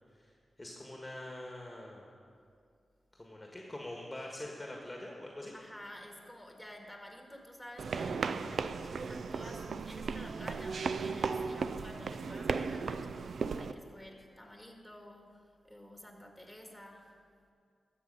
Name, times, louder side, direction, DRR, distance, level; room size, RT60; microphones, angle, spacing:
voice 1, 0.6-2.1 3.1-5.5, left 1 dB, 20° left, -1 dB, 1.5 m, -44 dB
voice 2, 5.5-17.2, equal, ahead, 2 dB, 2.1 m, -51 dB
sound 1, 7.8-13.7, right 5 dB, 75° right, 0.4 m, -36 dB
13.0 x 7.4 x 5.4 m, 2.3 s
cardioid pair, 50°, 0 cm